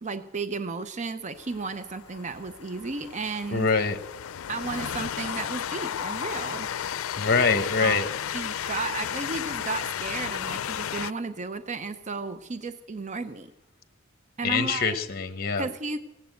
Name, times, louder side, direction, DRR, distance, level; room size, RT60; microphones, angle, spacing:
voice 1, 0.0-3.7 4.5-6.7 7.8-13.5 14.4-15.0 15.6-16.0, right 4 dB, 35° right, 11 dB, 0.6 m, -34 dB
Train, 1.4-11.1, left 9 dB, 85° left, 0.4 m, -33 dB
voice 2, 3.5-4.0 7.2-8.1 14.4-15.7, left 4 dB, 50° left, 9 dB, 1.0 m, -24 dB
17.0 x 9.4 x 7.8 m, 0.91 s
head